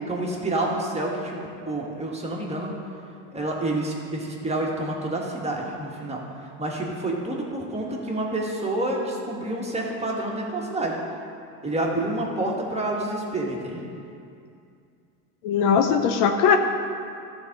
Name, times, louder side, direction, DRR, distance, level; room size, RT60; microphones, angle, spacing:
voice 1, 0.1-2.7 3.3-6.2 6.6-11.0 11.6-13.8, right 2 dB, 15° right, -2 dB, 1.7 m, -28 dB
voice 2, 15.4-16.6, left 7 dB, 60° left, 6 dB, 0.8 m, -19 dB
12.5 x 4.3 x 6.7 m, 2.5 s
supercardioid pair, 100°, 45 cm